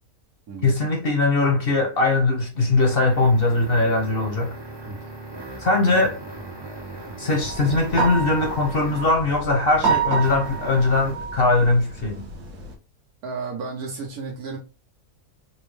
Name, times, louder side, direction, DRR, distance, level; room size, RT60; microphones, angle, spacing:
voice 1, 0.6-4.6 5.6-6.2 7.2-12.3, left 3 dB, 50° left, 0.7 m, -20 dB
sound 1, 2.1-9.3 10.2-11.3, right 2 dB, 35° right, 0.4 m, -38 dB
sound 2, 7.4-12.7, right 5 dB, 70° right, 1.4 m, -28 dB
voice 2, 13.2-14.6, right 4 dB, 90° right, 1.7 m, -33 dB
4.1 x 2.2 x 3.1 m
omnidirectional pair, 1.6 m